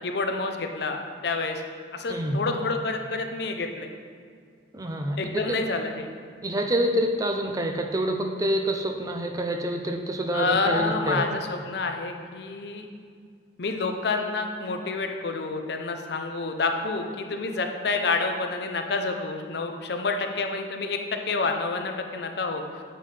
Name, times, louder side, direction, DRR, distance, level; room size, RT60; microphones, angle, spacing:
voice 1, 0.0-1.6 1.9-3.9 5.2-6.1 10.3-12.8 13.6-22.8, left 3 dB, 60° left, 5 dB, 0.5 m, -28 dB
voice 2, 2.1-2.4 4.7-5.2 6.4-11.3, right 1 dB, 20° right, 4 dB, 0.4 m, -27 dB
7.3 x 5.5 x 3.3 m, 2.1 s
head